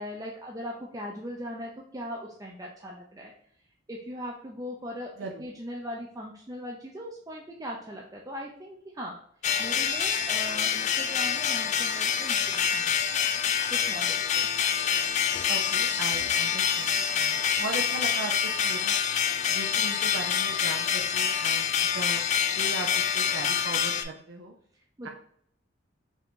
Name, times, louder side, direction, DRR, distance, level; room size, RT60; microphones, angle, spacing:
voice 1, 0.0-3.3 3.9-5.1 5.4-9.2 9.6-13.2 13.7-14.5 24.7-25.1, equal, 20° right, -1 dB, 0.5 m, -39 dB
sound 1, 9.4-24.0, left 8 dB, 40° left, 0.3 m, -26 dB
voice 2, 15.5-19.0 19.5-21.7 21.9-22.2 22.6-24.5 25.0-25.1, right 3 dB, 75° right, 1 dB, 0.5 m, -38 dB
5.1 x 2.6 x 3.6 m, 0.62 s
head